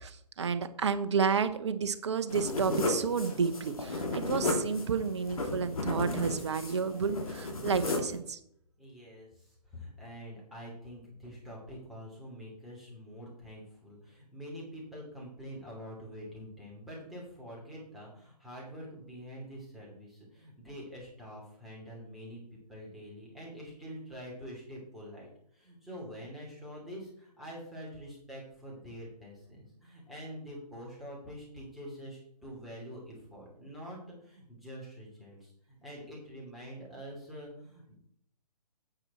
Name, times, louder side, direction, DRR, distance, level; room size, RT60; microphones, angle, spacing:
voice 1, 0.0-8.4, right 5 dB, 40° right, 11 dB, 0.8 m, -31 dB
sound 1, 2.3-8.2, left 2 dB, 55° left, 2.4 m, -34 dB
voice 2, 8.8-38.0, equal, ahead, -5 dB, 2.7 m, -46 dB
8.9 x 7.7 x 4.3 m, 0.69 s
figure-of-eight pair, 135°, 21 cm